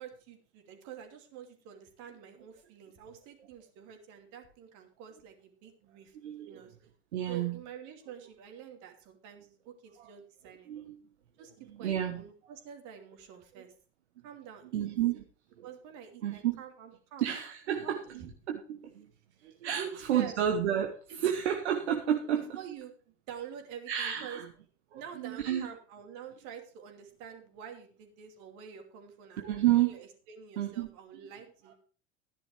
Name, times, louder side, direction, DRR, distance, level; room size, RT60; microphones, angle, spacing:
voice 1, 0.0-6.2 6.5-6.7 7.3-10.7 11.4-13.7 14.2-14.9 15.6-17.2 19.8-20.3 21.1-21.2 22.3-22.9 23.3-24.4 24.9-31.7, right 8 dB, 60° right, 4 dB, 2.7 m, -47 dB
voice 2, 6.2-6.6 7.1-7.6 10.0-10.1 10.7-10.9 11.7-12.2 14.7-15.2 15.6-15.7 16.2-16.6 17.2-19.1 19.4-22.6 23.9-24.5 24.9-25.7 29.4-30.0 30.6-30.9, right 10 dB, 75° right, 4 dB, 1.2 m, -31 dB
13.0 x 10.5 x 3.4 m, 0.41 s
hypercardioid pair, 80°, 34 cm